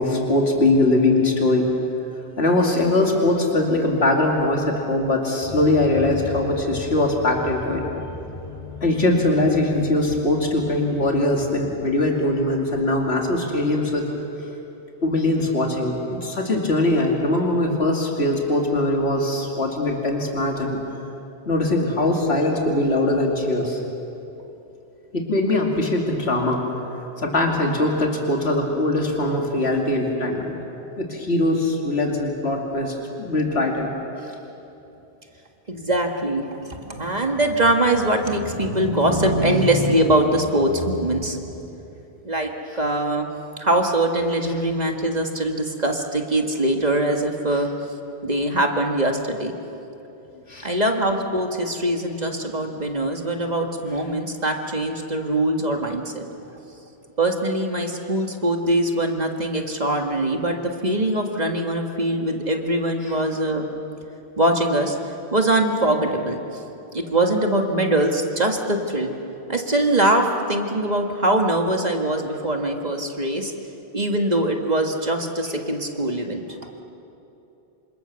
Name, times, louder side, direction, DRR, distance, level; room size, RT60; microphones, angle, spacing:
voice 1, 0.0-1.7 2.4-7.8 8.8-14.0 15.0-20.8 21.5-23.8 25.1-26.6 27.2-30.5 31.0-33.9 50.5-50.7 63.0-63.1, left 2 dB, 75° left, 0 dB, 2.9 m, -21 dB
sound 1, 5.4-13.8, left 3 dB, 35° left, 6.6 m, -39 dB
voice 2, 35.7-41.4 42.2-43.3 43.6-47.7 48.2-49.5 50.6-56.2 57.2-63.7 64.4-65.0 65.3-66.4 66.9-69.1 69.5-73.5 73.9-76.4, right 1 dB, 40° right, 3 dB, 1.9 m, -22 dB
27.5 x 26.0 x 7.0 m, 2.9 s
omnidirectional pair, 1.1 m